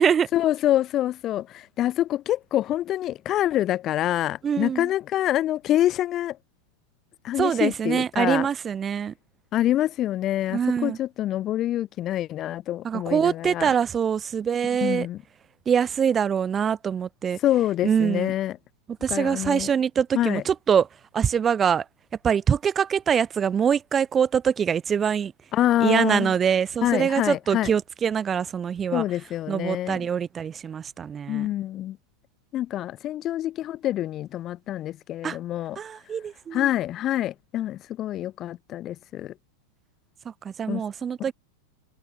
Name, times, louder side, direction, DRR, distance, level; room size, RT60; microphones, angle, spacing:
voice 1, 0.3-6.4 7.2-8.5 9.5-13.7 14.8-15.2 17.4-18.6 19.1-19.7 20.1-20.4 25.5-26.3 26.8-27.7 28.9-30.0 31.3-32.0 32.5-35.8 36.5-39.3 40.7-40.8, left 13 dB, 30° left, 3.5 m, -26 dB
voice 2, 4.4-4.9 7.4-9.1 10.5-11.0 12.8-15.1 15.6-17.4 17.8-18.3 19.0-20.9 21.1-21.8 22.2-25.3 25.8-29.0 29.5-31.5 35.2-35.4 35.7-36.7 40.2-41.3, right 7 dB, 20° right, 7.0 m, -24 dB
figure-of-eight pair, 90°, 0 cm